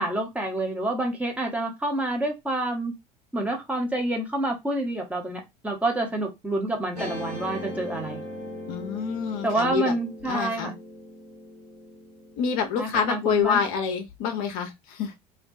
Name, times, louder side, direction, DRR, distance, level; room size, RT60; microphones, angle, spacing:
voice 1, 0.0-2.9 3.3-8.2 9.4-10.7 12.8-13.6, right 2 dB, 5° right, 0.7 m, -28 dB
Guitar, 7.0-13.4, left 1 dB, 75° right, 1.1 m, -39 dB
voice 2, 8.7-9.9 10.3-10.7 12.4-15.1, left 7 dB, 45° left, 0.5 m, -27 dB
2.2 x 2.2 x 2.5 m
figure-of-eight pair, 70°, 20 cm